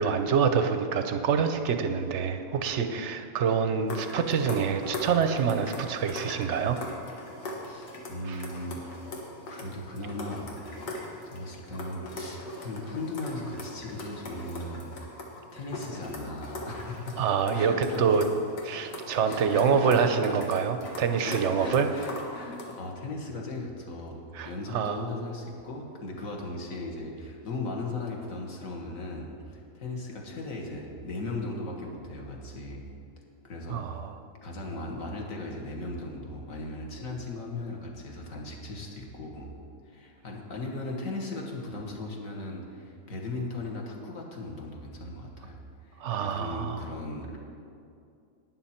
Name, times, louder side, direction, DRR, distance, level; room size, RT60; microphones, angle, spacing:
voice 1, 0.0-6.8 8.3-8.4 17.2-18.2 18.6-21.9 24.3-25.0 33.7-34.2 46.0-46.8, right 6 dB, 60° right, 8 dB, 0.8 m, -26 dB
sound 1, 3.9-22.9, left 1 dB, 90° left, 2.0 m, -41 dB
voice 2, 7.6-8.8 9.5-10.5 11.2-14.9 15.5-17.2 17.5-18.2 19.3-20.6 21.2-32.8 33.4-33.9 34.4-39.5 39.8-47.4, left 2 dB, 55° left, 0 dB, 1.7 m, -37 dB
11.5 x 9.4 x 4.3 m, 2.5 s
omnidirectional pair, 1.7 m